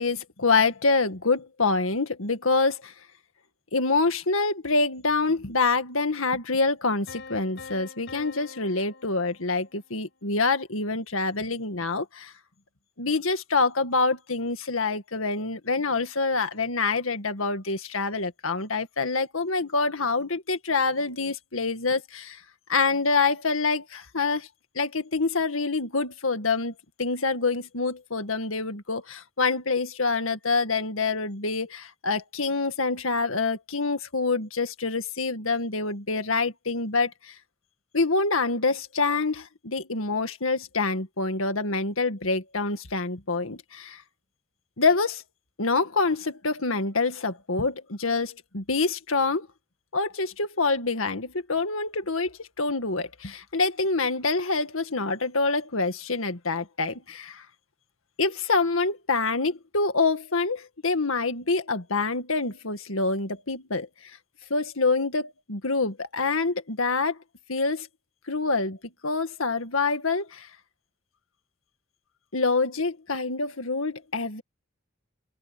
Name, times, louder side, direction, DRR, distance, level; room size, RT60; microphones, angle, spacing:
voice 1, 0.0-2.9 3.7-12.3 13.0-22.4 22.7-24.5 24.8-26.7 27.0-37.3 37.9-44.0 44.8-45.2 45.6-49.5 49.9-57.4 58.2-63.9 64.5-67.2 67.5-67.9 68.3-68.8 69.0-70.5 72.3-74.4, left 3 dB, 80° left, 2.0 m, -26 dB
sound 1, 7.1-10.0, left 4 dB, 60° left, 4.6 m, -45 dB
head